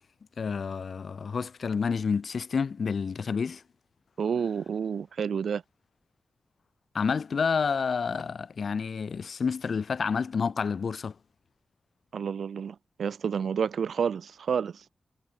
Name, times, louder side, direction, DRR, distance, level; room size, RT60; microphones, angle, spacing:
voice 1, 0.4-3.6 6.9-11.1, left 5 dB, 60° left, 5.9 m, -29 dB
voice 2, 4.2-5.6 12.1-14.8, right 7 dB, 75° right, 2.9 m, -30 dB
wide cardioid pair, 110°, 0 cm